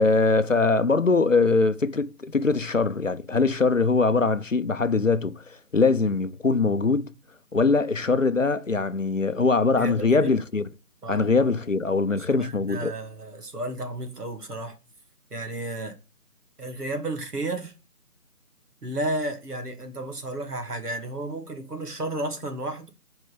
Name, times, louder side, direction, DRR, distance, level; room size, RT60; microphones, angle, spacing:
voice 1, 0.0-7.1 7.5-10.6 11.1-12.9, left 4 dB, 55° left, 0.6 m, -22 dB
voice 2, 9.8-10.3 11.0-11.3 12.2-14.8 15.3-15.9 16.6-17.7 18.8-22.9, right 1 dB, 80° right, 2.2 m, -32 dB
6.6 x 4.5 x 5.3 m
figure-of-eight pair, 180°, 46 cm